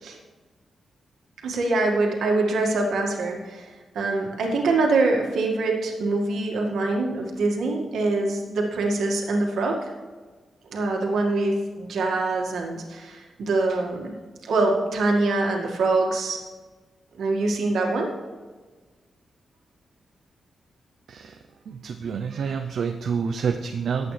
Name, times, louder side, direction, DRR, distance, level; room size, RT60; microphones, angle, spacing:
voice 1, 1.4-3.7 3.9-9.8 10.7-14.1 14.4-16.4 17.2-18.1, right 2 dB, 85° right, 0 dB, 1.9 m, -24 dB
voice 2, 21.7-24.1, right 6 dB, 70° right, 4 dB, 0.6 m, -28 dB
18.5 x 8.3 x 3.3 m, 1.4 s
wide cardioid pair, 150°, 0 cm